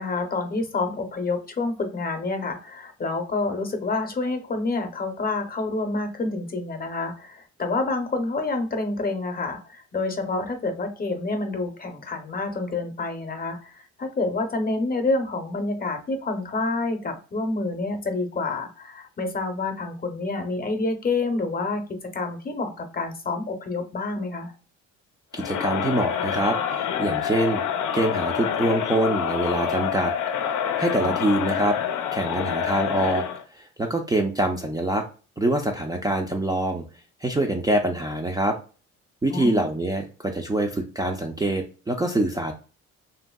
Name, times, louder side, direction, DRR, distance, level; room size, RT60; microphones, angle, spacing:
voice 1, 0.0-24.5 30.9-31.1 39.3-39.6, left 3 dB, 30° left, 6 dB, 0.7 m, -28 dB
Crowd, 25.3-33.4, left 8 dB, 80° left, 0.6 m, -27 dB
voice 2, 25.3-27.6 27.9-30.1 30.8-31.8 32.1-33.2 33.5-35.0 35.4-36.8 37.2-38.6 39.2-42.5, right 1 dB, 15° right, 2 dB, 0.4 m, -25 dB
2.9 x 2.6 x 2.2 m, 0.36 s
cardioid pair, 90°, 30 cm